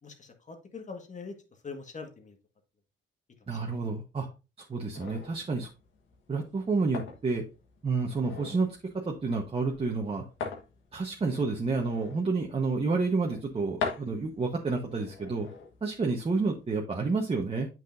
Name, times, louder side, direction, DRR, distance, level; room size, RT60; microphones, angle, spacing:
voice 1, 0.0-1.3 1.6-2.4 3.5-3.8, left 4 dB, 35° left, 4 dB, 1.7 m, -43 dB
voice 2, 3.5-4.3 4.7-5.7 6.3-7.4 7.8-8.8 9.1-10.2 10.9-15.5 15.8-17.7, right 4 dB, 30° right, 0 dB, 1.2 m, -29 dB
sound 1, 4.9-16.8, left 5 dB, 75° left, 1.6 m, -43 dB
8.3 x 6.0 x 2.6 m, 0.30 s
cardioid pair, 90°, 20 cm